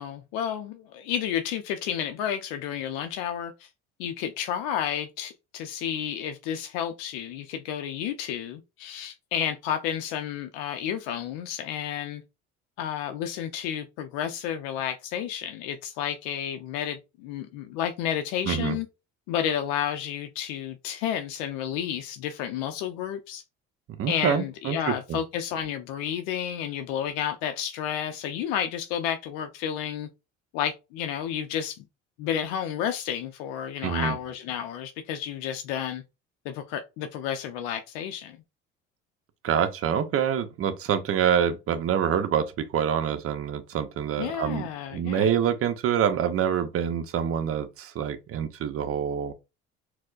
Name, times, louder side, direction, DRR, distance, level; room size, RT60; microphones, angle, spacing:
voice 1, 0.0-3.7 4.0-12.2 12.8-18.9 19.3-23.4 24.1-30.1 30.5-31.8 32.2-36.0 36.5-38.4 44.2-45.3, left 9 dB, 75° left, 0.5 m, -31 dB
voice 2, 18.4-18.8 24.0-25.2 33.8-34.2 39.4-44.7 44.9-49.3, right 8 dB, 45° right, 0.6 m, -26 dB
4.2 x 2.1 x 2.4 m
hypercardioid pair, 65°, 33 cm